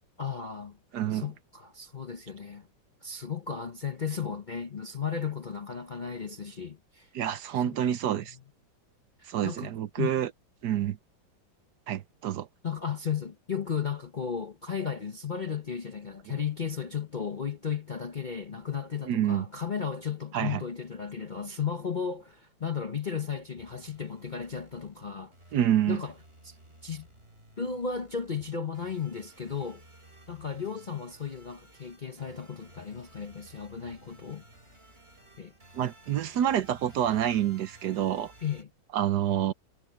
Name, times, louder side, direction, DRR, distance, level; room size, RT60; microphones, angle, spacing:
voice 1, 0.2-0.8 1.1-2.7 3.0-7.1 7.7-7.8 9.2-9.7 10.0-10.1 12.6-25.3 25.9-26.1 26.4-26.6 26.8-27.1 27.6-29.8 30.3-34.4 35.4-35.5 38.4-38.7, left 7 dB, 40° left, 0.7 m, -34 dB
voice 2, 0.9-1.3 7.1-8.4 9.3-10.3 10.6-11.0 11.9-12.5 19.1-19.4 20.3-20.6 25.5-26.0 35.7-38.3 38.9-39.5, right 10 dB, 70° right, 1.3 m, -27 dB
sound 1, 23.6-38.6, right 1 dB, 30° right, 6.8 m, -56 dB
omnidirectional pair, 2.0 m